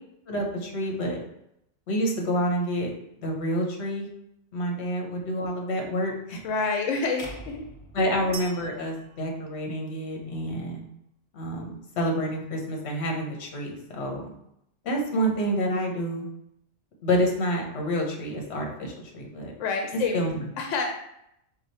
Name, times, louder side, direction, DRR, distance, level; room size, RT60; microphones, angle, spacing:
voice 1, 0.3-1.2 1.9-2.9 3.2-4.1 4.5-6.4 7.9-10.8 11.3-14.3 14.8-16.2 17.0-19.5 20.1-20.4, equal, 65° left, 1 dB, 1.1 m, -28 dB
voice 2, 6.4-7.7 19.6-20.3 20.6-20.9, left 4 dB, 90° left, 3 dB, 0.9 m, -28 dB
sound 1, 7.2-9.4, equal, 35° left, 0.5 m, -45 dB
sound 2, 8.3-10.3, right 6 dB, 55° right, 0.4 m, -44 dB
4.9 x 2.3 x 4.0 m, 0.78 s
omnidirectional pair, 1.2 m